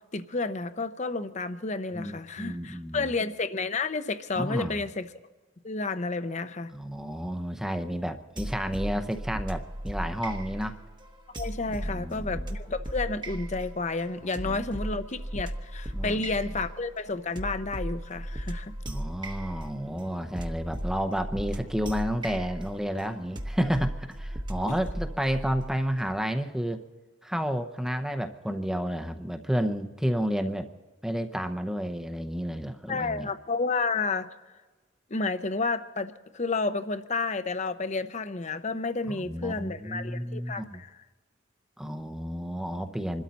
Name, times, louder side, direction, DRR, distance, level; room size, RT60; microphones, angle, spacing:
voice 1, 0.1-5.1 5.6-6.7 11.3-18.7 24.7-24.8 32.9-34.3 35.1-41.0, left 3 dB, 35° left, 11 dB, 0.8 m, -31 dB
voice 2, 1.9-3.1 4.3-4.8 6.7-10.8 11.8-12.5 14.4-14.6 15.9-16.2 18.9-26.8 27.2-30.7 31.0-33.3 39.1-40.8 41.8-43.2, equal, 5° right, 6 dB, 0.8 m, -31 dB
sound 1, 8.4-26.1, right 1 dB, 25° right, 1.1 m, -37 dB
26.0 x 13.0 x 4.1 m, 1.3 s
head